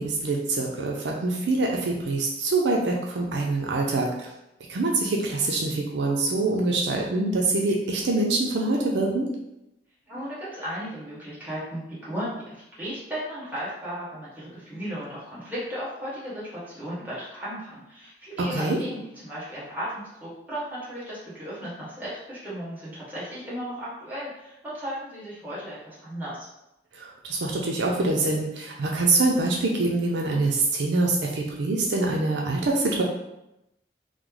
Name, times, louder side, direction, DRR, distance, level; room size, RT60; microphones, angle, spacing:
voice 1, 0.0-4.3 4.7-9.3 18.5-18.8 27.0-33.0, right 2 dB, 70° right, -1 dB, 0.5 m, -25 dB
voice 2, 10.0-26.5, equal, 10° right, -10 dB, 1.2 m, -35 dB
3.1 x 2.0 x 3.7 m, 0.88 s
head